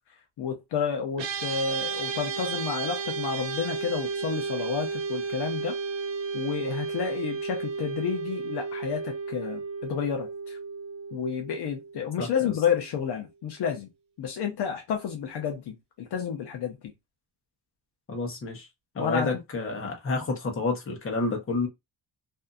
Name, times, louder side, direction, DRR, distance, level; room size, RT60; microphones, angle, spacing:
voice 1, 0.4-5.8 6.3-10.6 11.1-13.9 14.2-16.8 19.0-19.3, left 7 dB, 65° left, 0.7 m, -30 dB
sound 1, 1.2-12.6, right 4 dB, 80° right, 0.9 m, -33 dB
voice 2, 12.2-12.5 18.1-18.7 18.9-21.7, left 3 dB, 30° left, 0.9 m, -29 dB
2.6 x 2.5 x 2.2 m
cardioid pair, 150°, 44 cm